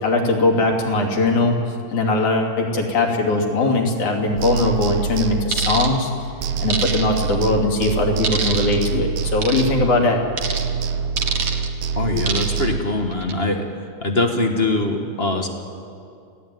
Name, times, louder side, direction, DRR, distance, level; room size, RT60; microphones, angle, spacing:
voice 1, 0.0-1.6 1.9-6.1 6.6-10.2, left 2 dB, 65° left, 1 dB, 4.1 m, -20 dB
sound 1, 4.4-6.2 6.4-10.1 10.4-12.8, right 6 dB, 70° right, 2.2 m, -25 dB
sound 2, 5.5-5.9 6.7-7.3 8.2-8.8 9.4-9.7 10.4-10.6 11.2-11.7 12.3-12.7 13.1-13.3, right 5 dB, 50° right, 2.1 m, -25 dB
voice 2, 11.9-13.6 14.0-15.5, left 2 dB, 35° left, 3 dB, 0.9 m, -22 dB
27.5 x 17.0 x 9.3 m, 2.4 s
omnidirectional pair, 3.8 m